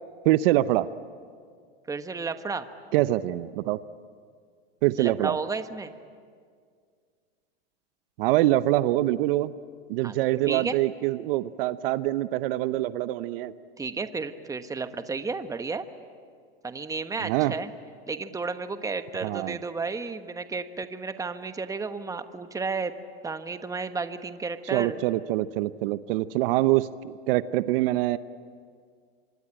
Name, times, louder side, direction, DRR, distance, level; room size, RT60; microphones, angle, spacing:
voice 1, 0.2-0.9 2.9-3.8 4.8-5.4 8.2-9.5 9.9-13.5 17.2-17.5 19.2-19.6 24.7-28.2, right 16 dB, 65° right, 14 dB, 0.8 m, -24 dB
voice 2, 1.9-2.7 5.0-5.9 10.0-10.1 10.5-10.8 13.8-15.9 16.6-17.7 18.1-22.9 23.2-25.0, right 4 dB, 10° right, 9 dB, 1.2 m, -32 dB
25.5 x 24.5 x 9.0 m, 2.1 s
supercardioid pair, 120°, 31 cm